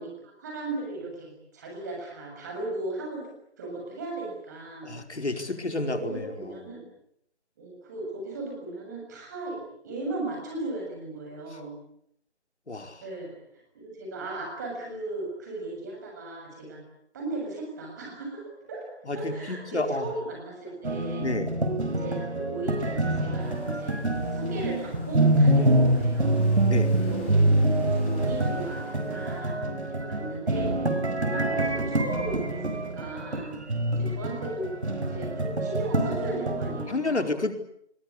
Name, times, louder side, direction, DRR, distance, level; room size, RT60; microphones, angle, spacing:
voice 1, 0.0-3.3 3.6-4.9 5.2-6.9 7.6-11.8 13.0-16.8 17.1-18.4 18.7-18.9 19.1-21.3 21.8-24.0 24.3-26.5 26.9-33.6 33.9-37.3, right 2 dB, 15° right, 1 dB, 7.0 m, -37 dB
voice 2, 4.8-6.6 12.7-13.0 19.1-20.1 21.2-21.5 26.6-26.9 29.6-29.8 36.9-37.5, left 2 dB, 75° left, 5 dB, 4.8 m, -30 dB
sound 1, 20.8-36.9, right 1 dB, 70° right, 5.4 m, -26 dB
sound 2, 23.4-29.4, left 3 dB, 10° left, 2.8 m, -47 dB
28.5 x 22.5 x 8.5 m, 0.73 s
figure-of-eight pair, 175°, 34 cm